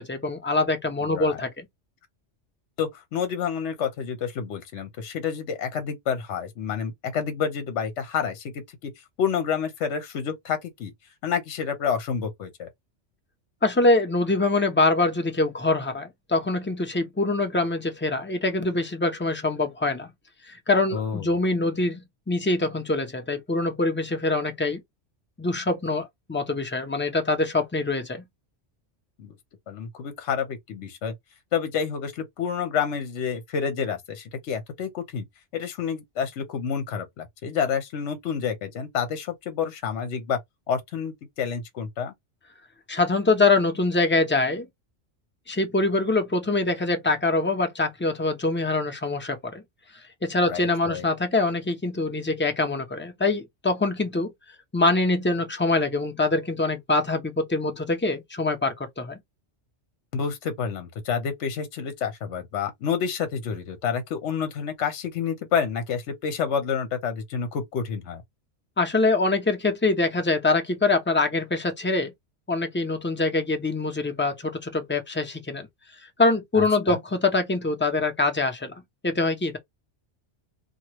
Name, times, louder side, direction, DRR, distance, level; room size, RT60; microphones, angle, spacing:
voice 1, 0.0-1.7 13.6-20.1 20.5-22.0 22.3-24.8 25.4-28.2 42.9-44.7 45.5-49.6 50.2-54.3 54.7-59.2 68.8-72.1 72.5-75.7 76.2-78.7 79.0-79.6, left 3 dB, 15° left, 0.5 m, -24 dB
voice 2, 1.0-1.4 2.8-8.9 9.2-10.9 11.2-12.7 20.9-21.3 29.2-29.3 29.7-31.1 31.5-35.3 35.5-40.4 40.7-42.1 50.5-51.0 60.1-68.2 76.5-77.0, left 7 dB, 75° left, 1.0 m, -29 dB
3.0 x 2.3 x 2.9 m
omnidirectional pair, 1.2 m